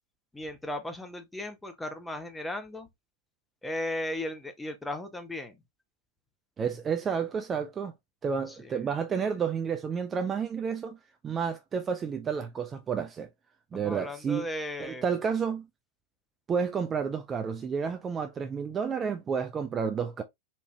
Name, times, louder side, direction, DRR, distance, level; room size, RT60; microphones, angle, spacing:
voice 1, 0.3-2.9 3.6-5.6 8.5-8.8 13.7-15.0, left 1 dB, 5° left, 0.8 m, -36 dB
voice 2, 6.6-7.9 8.2-11.0 11.2-13.3 13.7-14.5 14.8-15.7 16.5-20.2, right 6 dB, 20° right, 0.4 m, -30 dB
4.3 x 2.7 x 3.0 m
figure-of-eight pair, 90°, 0 cm